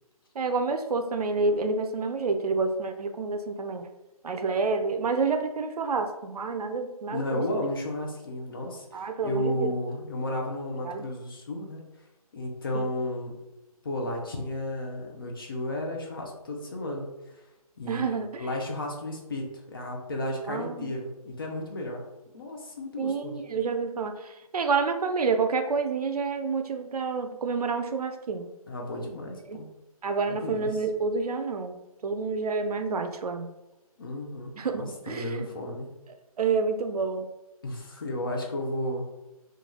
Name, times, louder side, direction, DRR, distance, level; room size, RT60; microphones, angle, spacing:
voice 1, 0.4-3.9 4.2-7.4 8.9-9.7 10.8-11.0 12.7-12.8 17.9-18.4 20.5-20.9 23.0-28.5 29.5-29.6 30.0-31.7 32.0-33.5 34.6-35.5 36.4-37.3, right 4 dB, 80° right, 7 dB, 0.4 m, -28 dB
voice 2, 7.1-11.9 12.3-13.4 13.8-17.4 17.8-18.0 18.4-22.0 22.3-23.4 28.7-29.7 30.3-30.8 34.0-35.9 37.6-39.1, left 1 dB, 35° left, 1 dB, 0.5 m, -33 dB
3.1 x 2.3 x 2.2 m, 0.99 s
figure-of-eight pair, 160°, 19 cm